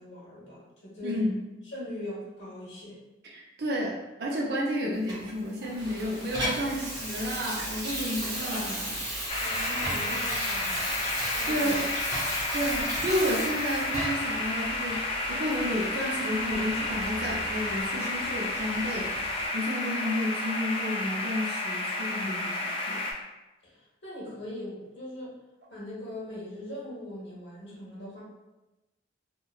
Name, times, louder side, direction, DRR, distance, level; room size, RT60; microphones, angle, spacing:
voice 1, 0.0-1.3 1.7-3.0 9.4-11.8 23.6-25.3 25.7-28.2, left 1 dB, 70° left, -7 dB, 1.2 m, -41 dB
voice 2, 1.0-1.4 3.2-9.0 11.5-11.8 12.5-23.0, equal, 60° right, -2 dB, 0.5 m, -31 dB
Water tap faucet / Sink (filling or washing), 5.1-14.4 14.9-15.0, equal, 20° right, 0.7 m, -34 dB
sound 1, 5.7-19.5, equal, 75° right, 0.9 m, -44 dB
sound 2, 9.3-23.1, left 2 dB, 30° left, 0.3 m, -31 dB
2.9 x 2.1 x 2.3 m, 1.0 s
head